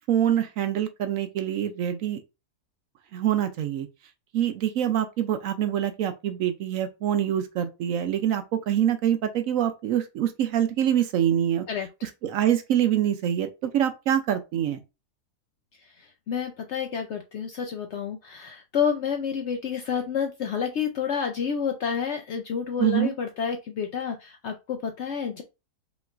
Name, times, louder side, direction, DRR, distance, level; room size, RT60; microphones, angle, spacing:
voice 1, 0.1-2.2 3.1-3.9 4.3-11.6 12.0-14.8 22.8-23.1, right 10 dB, 70° right, 0.8 m, -25 dB
voice 2, 16.0-25.4, left 7 dB, 70° left, 0.6 m, -29 dB
5.1 x 3.1 x 2.4 m
omnidirectional pair, 1.7 m